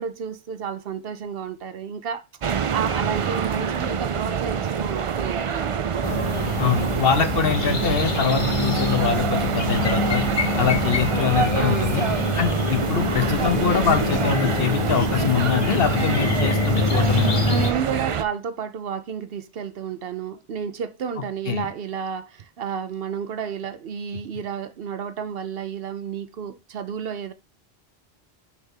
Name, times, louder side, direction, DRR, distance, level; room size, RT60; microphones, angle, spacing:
voice 1, 0.0-2.2 2.7-5.9 11.6-12.1 17.5-27.3, right 7 dB, 65° right, 0.9 m, -31 dB
sound 1, 2.4-18.2, right 7 dB, 50° right, 0.4 m, -26 dB
sound 2, 6.0-17.7, left 4 dB, 40° left, 0.8 m, -25 dB
voice 2, 6.6-10.2 10.6-12.0 12.3-17.4 21.2-21.7, left 7 dB, 65° left, 1.1 m, -24 dB
6.4 x 3.5 x 5.5 m
omnidirectional pair, 1.1 m